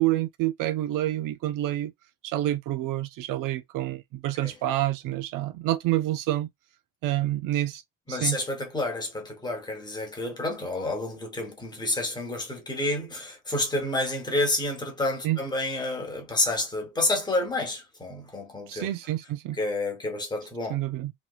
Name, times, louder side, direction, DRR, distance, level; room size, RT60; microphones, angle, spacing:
voice 1, 0.0-1.9 2.2-6.5 7.0-7.8 8.1-8.4 15.2-15.4 18.7-19.6 20.7-21.1, right 14 dB, 85° right, 0.6 m, -28 dB
voice 2, 8.1-18.9 19.5-20.8, left 2 dB, 15° left, 1.0 m, -29 dB
3.0 x 3.0 x 2.4 m
cardioid pair, 175°, 32 cm